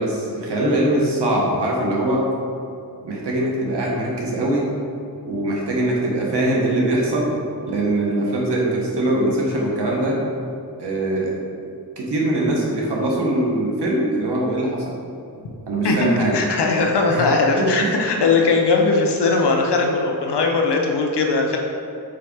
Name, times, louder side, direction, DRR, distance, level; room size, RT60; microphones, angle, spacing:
voice 1, 0.0-2.2 3.0-4.7 5.2-7.3 7.7-10.2 10.8-11.4 12.0-14.9 15.7-16.4 17.1-17.3 17.6-17.9, right 1 dB, 90° right, -3 dB, 1.3 m, -22 dB
voice 2, 16.3-21.6, left 3 dB, 85° left, 1 dB, 0.9 m, -19 dB
5.0 x 4.7 x 4.5 m, 2.6 s
cardioid pair, 70°, 40 cm